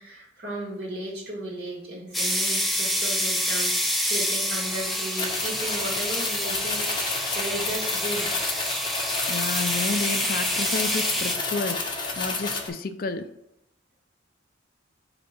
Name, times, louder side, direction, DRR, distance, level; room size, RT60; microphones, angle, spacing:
voice 1, 0.0-8.3, right 1 dB, 50° right, -3 dB, 2.3 m, -35 dB
sound 1, 2.1-11.3, equal, ahead, 0.6 m, -27 dB
sound 2, 5.2-12.7, left 3 dB, 25° left, 0.9 m, -31 dB
voice 2, 9.3-13.3, left 4 dB, 50° left, 9 dB, 0.4 m, -31 dB
4.9 x 4.4 x 5.2 m, 0.78 s
head